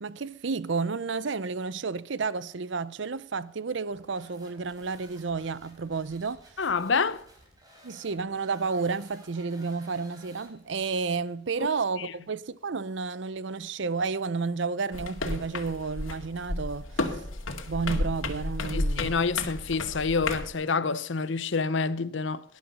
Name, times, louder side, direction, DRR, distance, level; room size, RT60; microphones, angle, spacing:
voice 1, 0.0-6.4 7.8-17.2 17.7-19.1, right 4 dB, 60° right, 0.6 m, -31 dB
sound 1, 3.9-10.9, right 1 dB, 20° right, 4.1 m, -55 dB
voice 2, 6.6-7.2 12.0-12.1 18.7-22.4, left 4 dB, 65° left, 0.8 m, -27 dB
sound 2, 14.9-20.5, left 2 dB, 85° left, 2.2 m, -32 dB
19.0 x 11.5 x 5.5 m
head